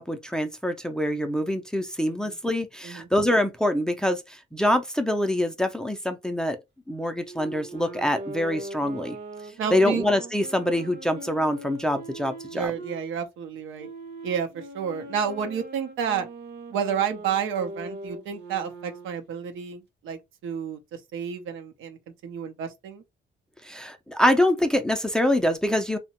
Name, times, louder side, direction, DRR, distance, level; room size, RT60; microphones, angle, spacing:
voice 1, 0.0-6.6 6.9-9.2 9.7-12.7 23.6-26.0, left 1 dB, 5° left, 0.4 m, -25 dB
Wind instrument woodwind instrument, 7.2-13.0 13.8-19.2, right 2 dB, 60° right, 0.8 m, -41 dB
voice 2, 9.6-10.1 12.5-13.9 14.2-16.3 16.7-20.8 21.1-23.0, right 7 dB, 85° right, 0.6 m, -30 dB
2.7 x 2.1 x 2.8 m
cardioid pair, 90°, 20 cm